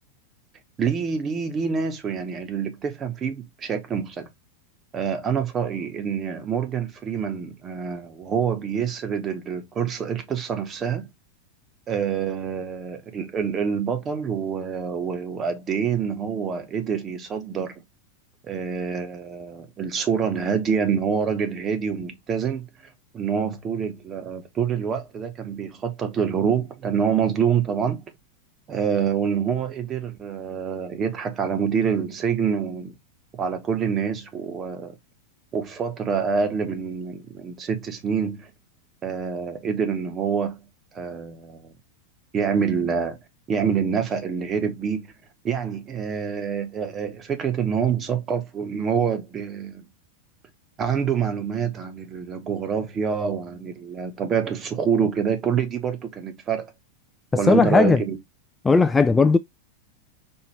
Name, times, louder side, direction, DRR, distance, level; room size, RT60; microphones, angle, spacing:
voice 1, 0.8-4.3 4.9-11.1 11.9-17.7 18.4-28.0 28.7-32.9 33.3-35.0 35.5-38.5 39.0-40.6 40.9-41.7 42.3-43.2 43.5-45.1 45.4-49.8 50.8-56.7 57.4-58.2, right 7 dB, 25° right, 1.0 m, -26 dB
voice 2, 57.5-58.0 58.6-59.4, left 4 dB, 10° left, 0.3 m, -16 dB
4.5 x 2.8 x 3.2 m
figure-of-eight pair, 90°, 0 cm